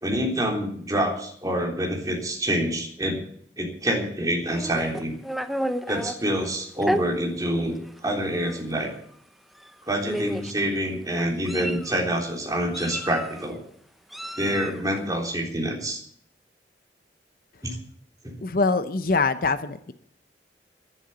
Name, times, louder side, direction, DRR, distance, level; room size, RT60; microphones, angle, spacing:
voice 1, 0.0-3.2 3.6-5.1 5.9-7.8 8.0-8.9 9.9-13.6 14.4-16.0 17.6-17.8 18.2-18.3, right 1 dB, 20° right, 0 dB, 3.6 m, -26 dB
Meow, 4.5-6.1 6.8-7.0 7.9-8.0 8.3-8.6 9.6-9.7 10.1-10.6 11.2-11.9 12.7-13.5 14.1-14.8, equal, ahead, 0.8 m, -31 dB
voice 2, 18.4-19.9, left 3 dB, 55° left, 11 dB, 0.8 m, -24 dB
11.0 x 10.5 x 9.4 m, 0.64 s
head